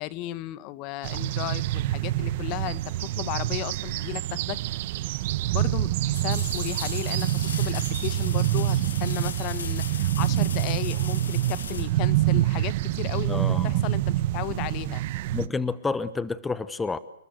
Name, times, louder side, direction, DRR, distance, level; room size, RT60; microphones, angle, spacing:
voice 1, 0.0-4.6 4.9-15.0, left 16 dB, 35° left, 17 dB, 1.3 m, -35 dB
sound 1, 1.0-15.5, right 15 dB, 45° right, 1.4 m, -26 dB
sound 2, 4.7-4.8 6.1-12.7 15.6-15.7, left 7 dB, 85° left, 2.6 m, -38 dB
voice 2, 13.3-13.8 15.3-17.0, left 4 dB, 10° left, 15 dB, 1.0 m, -29 dB
29.5 x 20.0 x 8.0 m, 0.74 s
hypercardioid pair, 145°, 0 cm